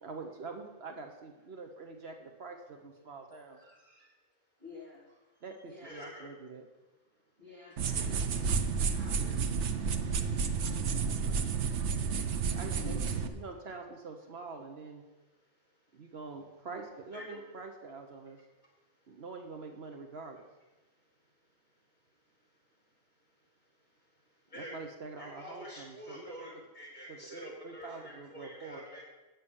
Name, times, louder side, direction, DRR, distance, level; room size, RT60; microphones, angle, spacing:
voice 1, 0.0-3.6 5.4-6.7 12.5-15.1 15.9-18.4 19.1-20.5 24.5-26.5 27.1-28.8, right 4 dB, 65° right, 4 dB, 1.2 m, -45 dB
voice 2, 3.5-4.1 4.6-5.0 5.7-6.0 7.4-9.4 10.1-11.1 12.8-13.2, left 3 dB, 45° right, -5 dB, 3.4 m, -50 dB
voice 3, 5.8-6.3 17.1-17.4 24.5-24.9 25.2-29.0, equal, 40° left, -3 dB, 4.9 m, -47 dB
sound 1, 7.8-13.3, right 5 dB, 85° right, 1.1 m, -31 dB
9.2 x 6.9 x 7.1 m, 1.1 s
omnidirectional pair, 1.1 m